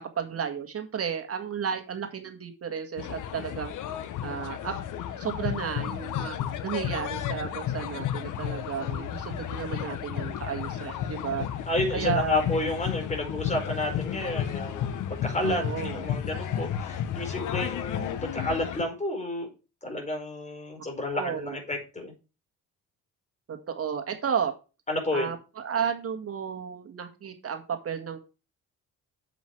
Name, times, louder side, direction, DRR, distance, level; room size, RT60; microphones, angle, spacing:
voice 1, 0.0-3.7 4.2-4.8 5.2-6.4 6.6-11.5 11.9-12.4 15.4-16.0 21.1-21.6 23.5-24.5 25.1-28.2, right 7 dB, 50° right, 5 dB, 1.9 m, -33 dB
sound 1, 3.0-18.8, left 10 dB, 85° left, 1.3 m, -32 dB
voice 2, 11.7-14.9 15.2-15.6 15.9-19.5 19.8-22.1 24.9-25.3, left 1 dB, 25° left, 3 dB, 4.6 m, -30 dB
8.1 x 7.7 x 4.6 m, 0.31 s
cardioid pair, 90°, 30 cm